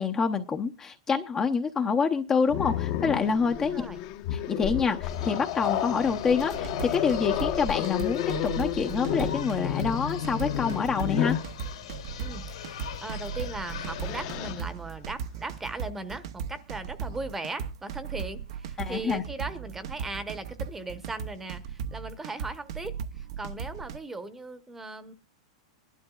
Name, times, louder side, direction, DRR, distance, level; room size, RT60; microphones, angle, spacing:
voice 1, 0.0-3.9 4.3-11.4 18.8-19.2, left 5 dB, 15° left, 5 dB, 0.7 m, -27 dB
Growling, 2.5-11.5 12.9-13.1 13.5-14.6, left 11 dB, 45° left, 1.0 m, -31 dB
voice 2, 3.6-4.0 12.2-25.1, right 2 dB, 10° right, 12 dB, 1.0 m, -38 dB
sound 1, 5.0-14.5, left 8 dB, 90° left, 2.6 m, -41 dB
sound 2, 6.5-24.0, right 7 dB, 65° right, 0.8 m, -37 dB
22.5 x 12.0 x 2.4 m, 0.31 s
supercardioid pair, 150°, 3 cm